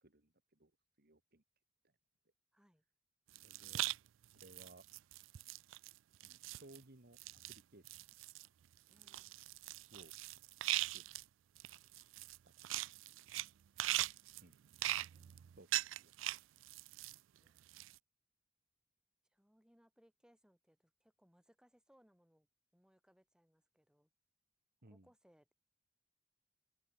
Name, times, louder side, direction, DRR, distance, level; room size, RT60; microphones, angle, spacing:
voice 1, 0.0-0.7 1.0-1.4 3.4-3.8 4.3-4.8 6.2-7.2 7.5-7.8 9.9-10.1 10.9-11.0 12.4-12.5 14.4-14.6 15.6-15.7 16.0-16.1 24.8-25.1, right 2 dB, 50° right, 2.1 m, -60 dB
voice 2, 2.5-2.8 8.9-9.3 15.1-15.4 17.4-17.7 19.3-22.5 22.7-24.1 24.9-25.5, equal, 5° right, 4.3 m, -71 dB
sound 1, 3.3-4.0 4.2-5.9 6.2-6.8 7.2-7.6 7.8-8.5 9.0-11.2 11.6-13.5 13.8-17.2 17.5-18.0, right 16 dB, 75° right, 0.3 m, -41 dB
open air
head